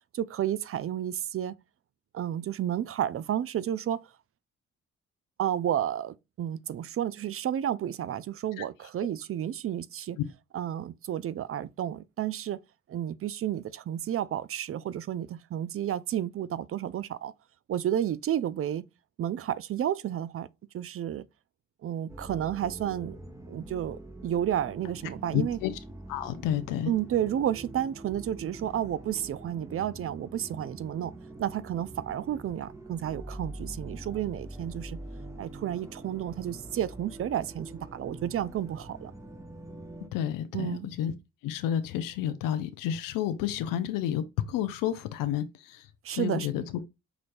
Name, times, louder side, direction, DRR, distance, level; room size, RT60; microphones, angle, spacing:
voice 1, 0.1-1.5 2.1-4.1 5.4-10.2 10.5-12.6 12.9-17.3 17.7-18.8 19.2-20.5 20.7-21.2 21.8-23.2 23.5-25.6 26.9-31.1 31.4-35.0 35.4-39.1 40.5-40.9 46.0-46.5, right 10 dB, 45° right, 0.4 m, -31 dB
sound 1, 22.1-40.1, right 2 dB, 10° right, 0.9 m, -44 dB
voice 2, 25.3-25.7 26.1-26.9 40.1-41.1 41.4-46.6, left 10 dB, 80° left, 0.6 m, -30 dB
6.0 x 3.2 x 2.5 m
hypercardioid pair, 50°, 32 cm